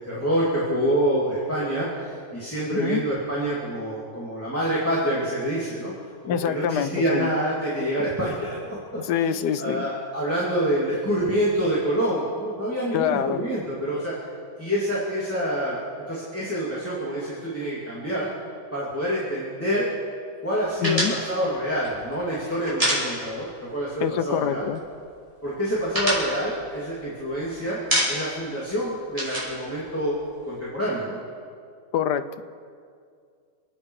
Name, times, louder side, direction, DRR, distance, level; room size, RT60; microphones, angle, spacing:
voice 1, 0.0-5.9 6.2-8.8 9.2-14.1 14.6-15.8 16.1-18.3 18.7-19.9 20.4-24.7 25.4-27.8 28.1-30.2 30.5-31.2, equal, 5° left, -7 dB, 2.6 m, -27 dB
voice 2, 2.7-3.0 6.2-7.3 9.0-9.9 12.9-13.4 20.8-21.1 24.0-24.8 31.9-32.3, left 9 dB, 70° left, 12 dB, 1.2 m, -25 dB
sound 1, 20.8-23.6 23.9-24.1 24.4-25.0 25.4-27.4 27.7-28.5 28.7-30.5, equal, 15° right, 4.6 m, -27 dB
28.5 x 9.7 x 4.8 m, 2.2 s
omnidirectional pair, 2.1 m